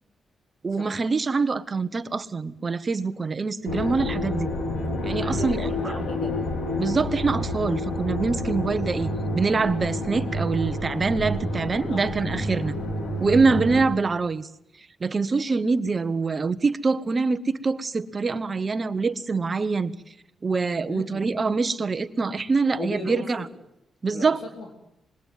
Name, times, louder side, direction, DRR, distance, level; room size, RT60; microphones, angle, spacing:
voice 1, 0.6-4.5 5.0-5.7 6.8-12.7 13.2-14.5 15.0-19.9 20.4-23.4 24.0-24.4, right 4 dB, 30° right, 13 dB, 1.1 m, -25 dB
sound 1, 3.7-13.9, left 2 dB, 85° left, 4.4 m, -29 dB
sound 2, 4.7-13.9, right 7 dB, 60° right, 1.1 m, -38 dB
voice 2, 5.1-6.4 8.6-8.8 11.9-12.0 20.9-21.3 22.8-23.5 24.1-24.7, left 2 dB, 60° left, 2 dB, 3.9 m, -36 dB
25.5 x 21.5 x 9.4 m, 0.80 s
wide cardioid pair, 140°, 0 cm